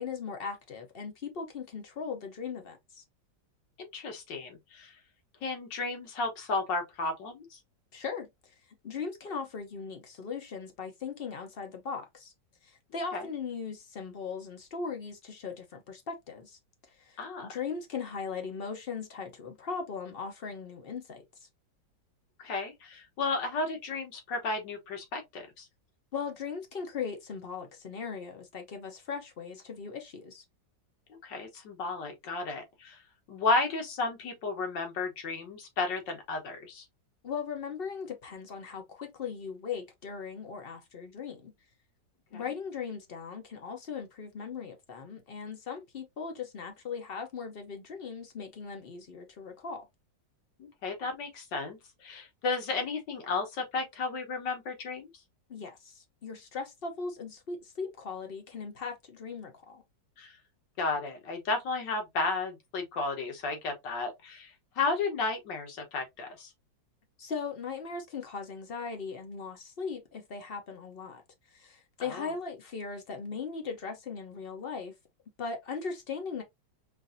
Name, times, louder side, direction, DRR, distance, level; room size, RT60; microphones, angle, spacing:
voice 1, 0.0-3.0 7.9-8.3 8.8-12.3 12.6-16.6 16.9-21.5 26.1-30.4 37.2-41.5 42.3-49.9 55.5-59.8 67.2-71.2 71.5-74.9 75.4-76.4, left 5 dB, 45° left, 0.8 m, -38 dB
voice 2, 3.8-4.9 5.4-7.6 13.1-13.2 17.2-17.5 22.4-25.7 31.1-33.0 33.3-36.9 42.3-42.4 50.6-55.1 60.2-60.4 60.8-66.5 72.1-72.3, left 3 dB, 75° left, 1.8 m, -33 dB
5.3 x 2.6 x 2.6 m
omnidirectional pair, 2.0 m